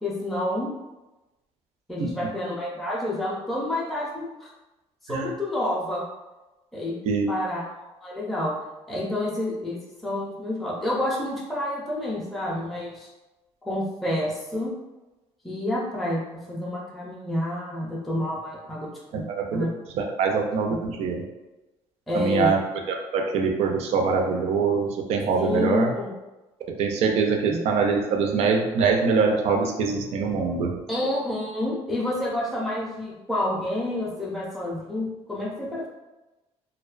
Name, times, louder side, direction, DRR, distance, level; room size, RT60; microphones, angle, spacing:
voice 1, 0.0-0.7 1.9-4.5 5.0-6.0 6.7-7.0 7.3-7.7 8.0-8.5 8.9-13.1 13.6-14.7 15.4-19.3 19.5-19.7 20.7-20.8 22.1-22.6 25.4-26.1 27.5-27.6 30.9-35.9, left 1 dB, ahead, -5 dB, 0.4 m, -29 dB
voice 2, 19.1-19.7 20.2-21.2 22.1-22.6 22.9-25.9 26.7-30.8, right 5 dB, 65° right, 3 dB, 0.4 m, -23 dB
2.5 x 2.1 x 2.4 m, 1.1 s
cardioid pair, 160°, 12 cm